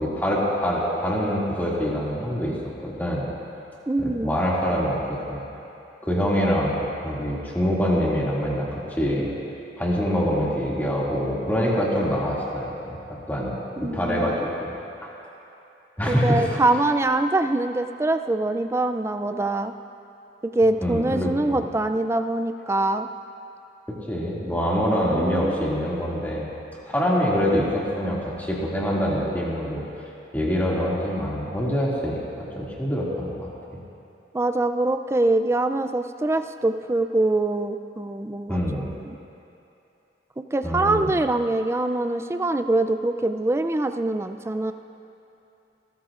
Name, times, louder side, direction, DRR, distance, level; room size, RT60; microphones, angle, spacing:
voice 1, 0.0-2.5 2.8-3.3 4.0-5.4 6.0-6.8 7.0-9.3 9.8-13.0 13.3-14.8 15.0-15.1 16.0-16.5 20.8-21.7 24.1-26.5 26.9-29.8 30.3-33.8 38.5-38.9 40.6-41.1, equal, 10° left, -6 dB, 2.2 m, -25 dB
voice 2, 3.9-4.4 13.8-14.4 16.1-19.7 20.4-23.1 25.0-25.7 34.3-39.2 40.5-44.7, right 2 dB, 15° right, 8 dB, 0.4 m, -24 dB
28.5 x 13.5 x 2.5 m, 2.9 s
head